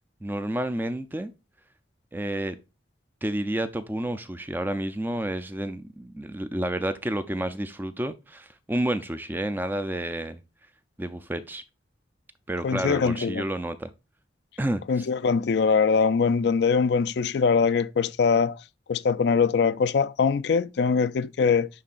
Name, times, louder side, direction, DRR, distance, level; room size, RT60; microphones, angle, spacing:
voice 1, 0.2-1.3 2.1-2.6 3.2-10.4 11.0-11.6 12.5-13.9 14.6-15.1, right 1 dB, 10° right, 0.4 m, -30 dB
voice 2, 12.6-13.4 14.9-18.6 18.9-21.7, left 5 dB, 65° left, 0.4 m, -22 dB
11.5 x 3.8 x 2.5 m
head